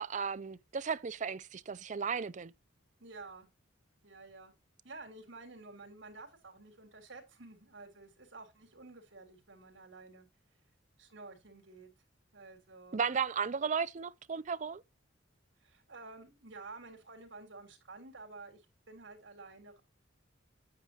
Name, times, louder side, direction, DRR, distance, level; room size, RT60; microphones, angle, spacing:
voice 1, 0.0-2.5 12.9-14.8, right 6 dB, 40° right, 0.5 m, -35 dB
voice 2, 3.0-3.5 4.0-4.5 4.8-10.3 11.0-11.9 12.3-13.0 15.6-19.8, right 3 dB, 70° right, 3.7 m, -51 dB
9.5 x 9.2 x 2.9 m
head